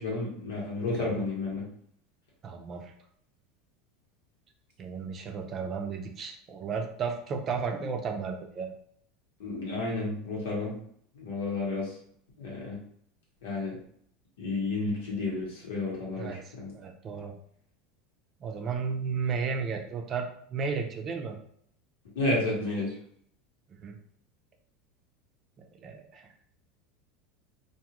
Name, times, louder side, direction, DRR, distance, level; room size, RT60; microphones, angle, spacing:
voice 1, 0.0-1.6 9.4-10.7 11.1-12.0 12.4-12.8 13.4-13.7 14.4-16.7 22.1-22.9, left 2 dB, 85° left, -3 dB, 1.3 m, -31 dB
voice 2, 2.4-2.9 4.8-8.7 16.2-16.4 16.7-17.3 18.4-21.4 23.8-24.0 25.6-26.3, right 5 dB, 35° right, 3 dB, 0.5 m, -34 dB
2.6 x 2.4 x 3.0 m, 0.66 s
supercardioid pair, 115°, 0 cm